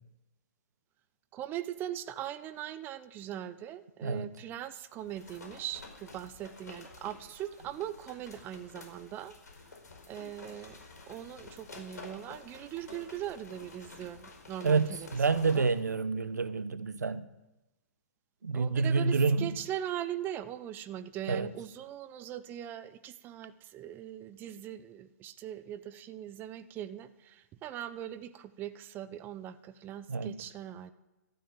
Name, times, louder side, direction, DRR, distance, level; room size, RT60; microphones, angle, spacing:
voice 1, 1.3-9.3 10.1-15.7 18.5-30.9, right 11 dB, 20° right, 0.7 m, -40 dB
voice 2, 4.0-4.3 14.6-17.2 18.4-19.5 21.3-21.5 30.1-30.4, right 4 dB, 85° right, 1.0 m, -28 dB
sound 1, 5.0-15.8, left 3 dB, 75° left, 4.9 m, -50 dB
13.5 x 13.0 x 7.8 m
hypercardioid pair, 130°, 9 cm